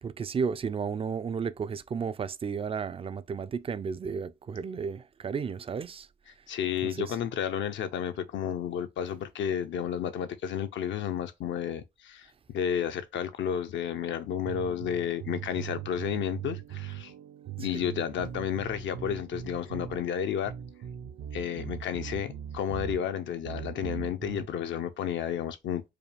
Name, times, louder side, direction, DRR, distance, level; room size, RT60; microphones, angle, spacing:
voice 1, 0.0-6.1 6.8-7.2, right 6 dB, 30° right, 0.4 m, -33 dB
voice 2, 6.5-12.3 12.5-17.1 17.6-20.5 21.3-25.8, left 9 dB, 70° left, 0.6 m, -32 dB
sound 1, 14.4-24.5, right 9 dB, 75° right, 0.7 m, -40 dB
4.8 x 2.3 x 3.3 m
cardioid pair, 90°, 20 cm